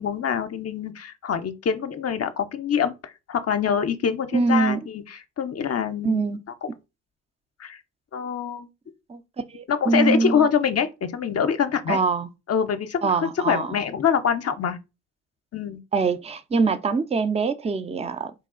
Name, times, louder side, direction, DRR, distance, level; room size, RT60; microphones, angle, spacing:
voice 1, 0.0-6.3 6.6-6.7 7.6-7.8 8.1-8.7 9.7-12.0 12.5-14.8 15.5-15.8, left 7 dB, 45° left, 0.6 m, -25 dB
voice 2, 4.3-4.8 6.0-6.4 9.1-9.2 9.5-10.5 11.9-12.3 13.0-13.7 15.9-18.3, right 4 dB, 20° right, 0.5 m, -23 dB
4.1 x 2.3 x 3.7 m
supercardioid pair, 50°, 35 cm